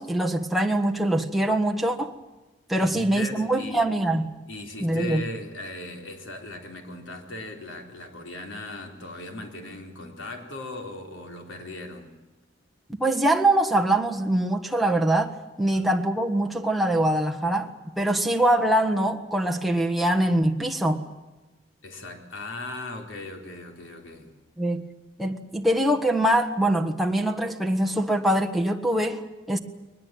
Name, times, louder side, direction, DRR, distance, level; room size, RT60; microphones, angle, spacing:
voice 1, 0.0-2.1 2.7-4.3 4.8-5.2 13.0-21.0 24.6-24.9 25.2-29.6, right 1 dB, ahead, 1.4 m, -23 dB
voice 2, 2.8-3.8 4.5-12.1 15.7-16.0 21.8-24.3, left 2 dB, 85° left, 3.9 m, -38 dB
21.5 x 20.5 x 9.0 m
head